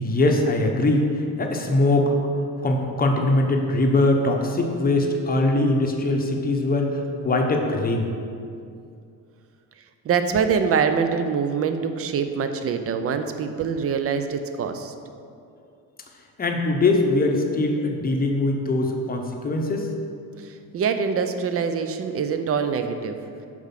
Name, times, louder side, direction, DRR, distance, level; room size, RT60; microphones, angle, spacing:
voice 1, 0.0-2.1 2.6-8.1 16.4-19.9, left 2 dB, 25° left, 2 dB, 0.8 m, -22 dB
voice 2, 10.0-14.9 20.4-23.2, right 6 dB, 40° right, 8 dB, 0.5 m, -24 dB
7.1 x 4.9 x 5.8 m, 2.5 s
cardioid pair, 145°, 38 cm